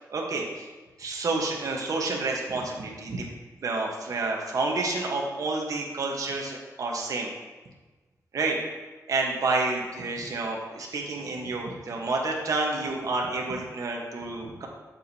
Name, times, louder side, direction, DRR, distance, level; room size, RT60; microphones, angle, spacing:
voice 1, 0.1-0.7 1.0-3.3 3.6-7.3 8.3-8.6 9.1-14.7, right 3 dB, 60° right, -1 dB, 1.1 m, -29 dB
7.4 x 7.1 x 2.8 m, 1.3 s
wide cardioid pair, 130°, 6 cm